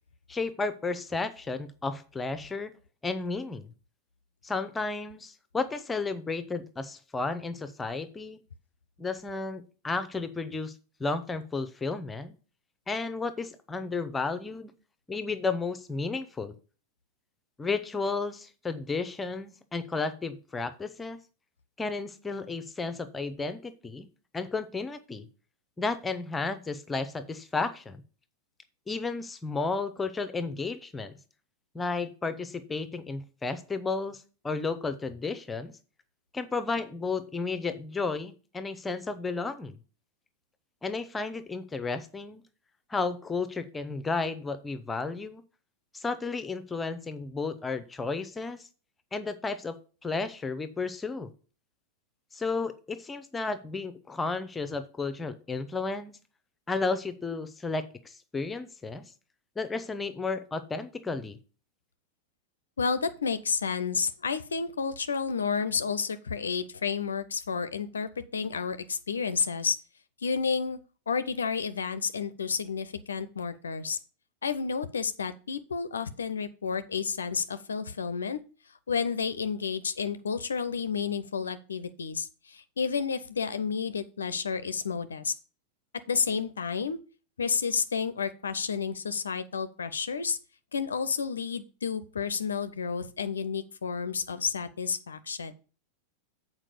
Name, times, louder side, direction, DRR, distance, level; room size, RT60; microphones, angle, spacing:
voice 1, 0.3-2.7 3.0-3.7 4.4-8.4 9.0-10.7 11.0-12.3 12.9-14.7 15.1-16.6 17.6-21.2 21.8-24.1 24.3-25.3 25.8-28.0 28.9-31.2 31.7-35.7 36.3-39.8 40.8-42.4 42.9-45.4 45.9-48.7 49.1-49.8 50.0-51.3 52.3-56.2 56.7-59.1 59.6-61.4, left 4 dB, 15° left, 12 dB, 0.8 m, -33 dB
voice 2, 62.8-69.8 70.2-70.8 71.1-74.0 74.4-78.4 78.9-85.3 86.1-87.0 87.4-90.4 90.7-95.5, left 5 dB, 70° left, 13 dB, 0.5 m, -31 dB
7.5 x 4.6 x 6.7 m, 0.37 s
figure-of-eight pair, 90°, 0 cm